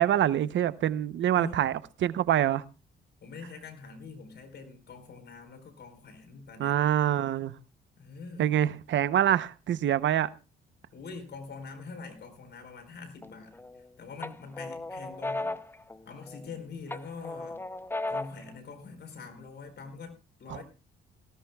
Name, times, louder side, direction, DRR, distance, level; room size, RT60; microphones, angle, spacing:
voice 1, 0.0-2.6 6.6-7.5 8.4-10.3 20.5-20.6, right 11 dB, 70° right, 0.8 m, -25 dB
voice 2, 3.2-6.8 8.0-8.5 10.9-13.5 14.0-15.6 16.0-17.6 18.1-20.1 20.4-20.6, left 4 dB, 60° left, 4.4 m, -44 dB
sound 1, 13.2-13.8 14.2-16.5 16.9-18.5, left 2 dB, 10° left, 0.7 m, -36 dB
18.5 x 17.0 x 2.3 m
cardioid pair, 90°, 20 cm